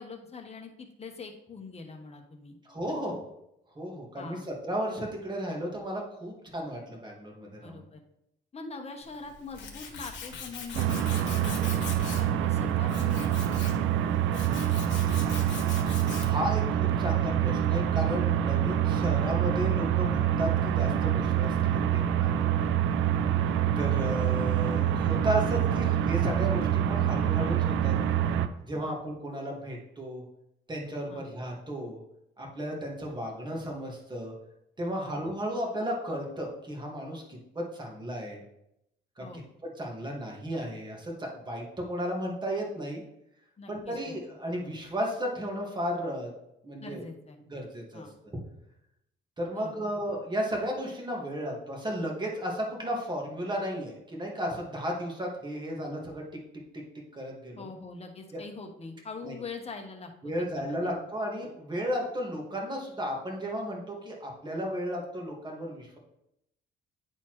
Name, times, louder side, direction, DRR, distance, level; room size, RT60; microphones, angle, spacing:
voice 1, 0.0-2.6 4.2-4.5 7.6-8.0 8.5-14.4 23.3-23.4 28.8-29.0 31.1-31.2 35.0-35.2 39.2-39.4 43.6-44.2 46.8-47.4 47.9-48.1 49.5-49.7 57.6-61.0, left 4 dB, 30° left, 3 dB, 1.2 m, -43 dB
voice 2, 2.6-3.2 3.8-7.8 16.1-22.4 23.8-27.9 28.6-30.2 30.7-32.0 32.4-34.3 34.8-37.2 37.6-38.4 39.2-39.3 39.6-43.0 43.7-46.3 46.6-47.0 47.5-48.0 49.4-56.2 57.1-57.7 58.3-58.4 59.2-59.4 60.2-66.0, equal, 20° right, -1 dB, 1.9 m, -34 dB
Tools, 9.0-16.5, left 6 dB, 65° left, 1.4 m, -42 dB
sound 1, 10.7-28.5, right 10 dB, 80° right, 0.5 m, -26 dB
9.7 x 4.2 x 3.2 m, 0.82 s
cardioid pair, 90°, 20 cm